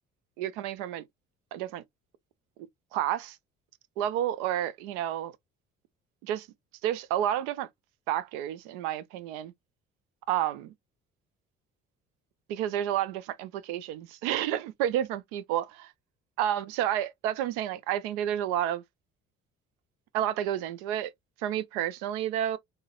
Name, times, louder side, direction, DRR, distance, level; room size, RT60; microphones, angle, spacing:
voice 1, 0.4-1.0 1.5-1.8 2.9-3.4 4.0-5.3 6.2-6.5 6.8-7.7 8.1-9.5 10.3-10.7 12.5-15.6 16.4-18.8 20.1-21.1 21.4-22.6, right 11 dB, 65° right, 0.7 m, -30 dB
3.8 x 3.8 x 2.4 m
figure-of-eight pair, 50°, 38 cm